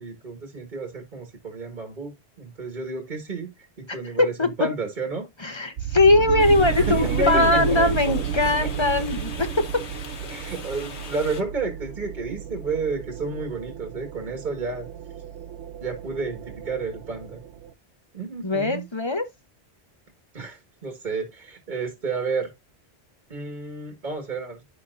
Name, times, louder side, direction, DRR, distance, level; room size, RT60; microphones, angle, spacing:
voice 1, 0.0-5.3 6.7-7.6 8.6-8.7 10.3-14.9 15.8-17.4 18.1-18.9 20.3-22.5 23.3-24.6, right 4 dB, 45° right, 1.8 m, -31 dB
voice 2, 3.9-4.5 5.4-9.6 18.4-19.2, left 2 dB, 30° left, 0.8 m, -21 dB
sound 1, 5.8-17.7, right 10 dB, 80° right, 1.0 m, -32 dB
sound 2, 6.4-11.4, left 4 dB, 90° left, 1.4 m, -33 dB
10.0 x 6.4 x 2.5 m
omnidirectional pair, 1.1 m